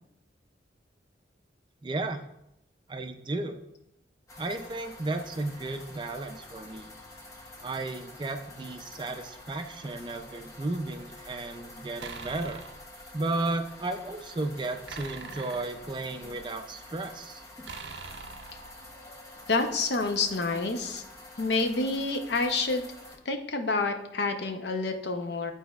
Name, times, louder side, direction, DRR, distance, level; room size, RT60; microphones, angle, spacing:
voice 1, 1.8-2.2 2.9-3.6 4.4-6.9 7.6-12.6 13.1-17.4, right 2 dB, 25° right, 6 dB, 0.4 m, -34 dB
sound 1, 4.3-23.2, left 2 dB, 15° left, 0.7 m, -48 dB
sound 2, 12.0-12.9 14.9-16.4 17.6-19.1, right 4 dB, 75° right, 0.5 m, -43 dB
voice 2, 19.5-21.0 21.4-22.8 23.3-25.5, left 3 dB, 65° left, 6 dB, 0.6 m, -28 dB
11.0 x 4.1 x 2.3 m, 0.84 s
head